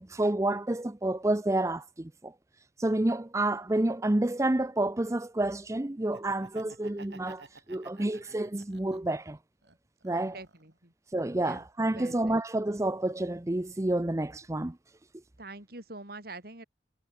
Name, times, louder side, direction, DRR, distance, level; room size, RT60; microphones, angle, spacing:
voice 1, 0.0-2.3 2.8-9.4 10.0-10.3 11.1-14.8, right 1 dB, 15° right, 0.6 m, -29 dB
Laughter, 6.0-9.2 9.6-10.7, right 3 dB, 80° right, 7.8 m, -52 dB
voice 2, 10.2-10.9 11.4-11.7 11.9-12.4 15.4-16.6, right 2 dB, 60° right, 5.2 m, -45 dB
head